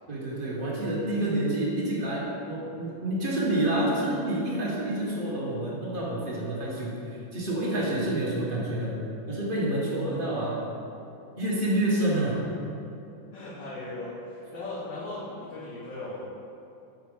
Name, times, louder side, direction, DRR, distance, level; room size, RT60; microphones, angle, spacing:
voice 1, 0.1-9.0 9.3-10.6 11.4-12.4, right 1 dB, 35° right, -5 dB, 1.0 m, -28 dB
voice 2, 13.3-16.2, left 2 dB, 70° left, -8 dB, 1.7 m, -37 dB
4.8 x 4.3 x 5.0 m, 2.7 s
omnidirectional pair, 2.1 m